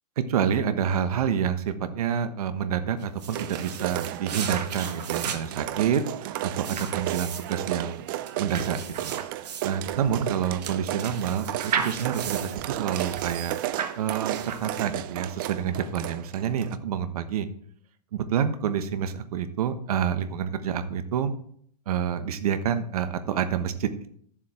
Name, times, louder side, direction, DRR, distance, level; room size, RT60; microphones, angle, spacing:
voice 1, 0.3-9.1 9.4-13.6 14.0-17.5 18.1-21.3 21.9-24.1, right 8 dB, 65° right, 10 dB, 1.2 m, -28 dB
sound 1, 3.0-15.1, right 7 dB, 80° right, 1.5 m, -35 dB
sound 2, 3.3-16.8, right 14 dB, 35° right, 0.4 m, -34 dB
10.5 x 7.3 x 4.4 m, 0.62 s
hypercardioid pair, 160°, 21 cm